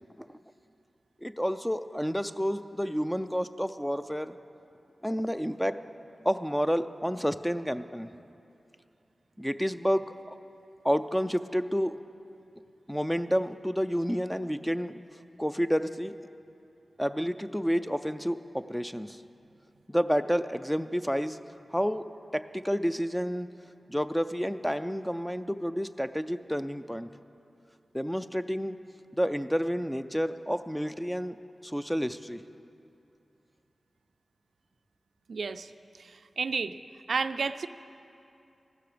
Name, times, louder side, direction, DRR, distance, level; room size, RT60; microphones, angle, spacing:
voice 1, 1.2-4.4 5.0-5.8 6.2-8.1 9.4-10.4 10.8-12.0 12.9-15.0 15.4-16.1 17.0-19.2 19.9-21.4 21.7-22.0 22.3-23.5 23.9-27.1 27.9-28.8 29.1-31.3 31.6-32.4, equal, 5° left, 11 dB, 0.4 m, -29 dB
voice 2, 35.3-35.7 36.0-36.8 37.1-37.7, right 5 dB, 80° right, 11 dB, 0.4 m, -31 dB
15.0 x 13.0 x 5.0 m, 2.7 s
wide cardioid pair, 105°, 0 cm